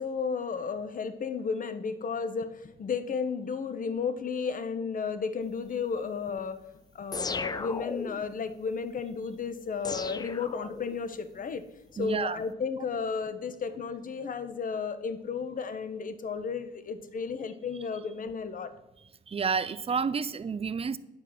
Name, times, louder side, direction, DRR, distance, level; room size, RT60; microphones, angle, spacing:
voice 1, 0.0-6.6 6.9-11.6 12.0-18.7, left 5 dB, 50° left, 11 dB, 1.0 m, -33 dB
sound 1, 7.1-8.4 9.8-11.1, left 4 dB, 20° left, 0.4 m, -36 dB
voice 2, 12.0-12.4 19.3-21.0, right 5 dB, 30° right, 16 dB, 0.5 m, -30 dB
8.9 x 4.9 x 7.2 m, 0.95 s
supercardioid pair, 65°, 18 cm